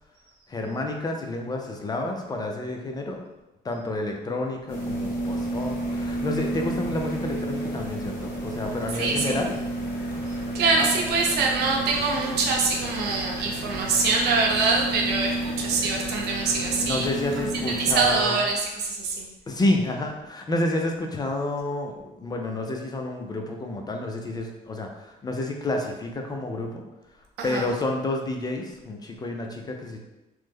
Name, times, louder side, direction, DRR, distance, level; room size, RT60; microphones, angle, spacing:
voice 1, 0.5-3.2 3.6-9.5 10.8-10.9 16.8-18.4 19.5-26.8 27.4-30.0, left 2 dB, 25° left, 2 dB, 0.4 m, -29 dB
sound 1, 4.7-18.2, right 1 dB, 55° left, 1.2 m, -31 dB
voice 2, 8.9-9.4 10.3-17.1 17.4-19.2 27.4-27.6, right 4 dB, 75° right, 0 dB, 0.7 m, -24 dB
3.0 x 2.1 x 3.5 m, 1.0 s
cardioid pair, 110°, 17 cm